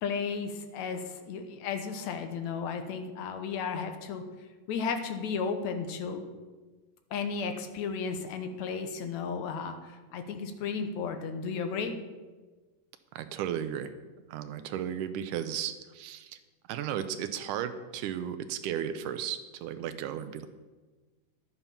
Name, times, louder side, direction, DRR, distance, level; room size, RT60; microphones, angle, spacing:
voice 1, 0.0-4.2 4.7-6.2 7.1-11.9, left 5 dB, 70° left, 7 dB, 1.9 m, -34 dB
voice 2, 13.1-13.9 14.3-16.4 16.7-20.5, right 9 dB, 80° right, 10 dB, 1.9 m, -35 dB
11.0 x 8.9 x 5.7 m, 1.3 s
omnidirectional pair, 4.0 m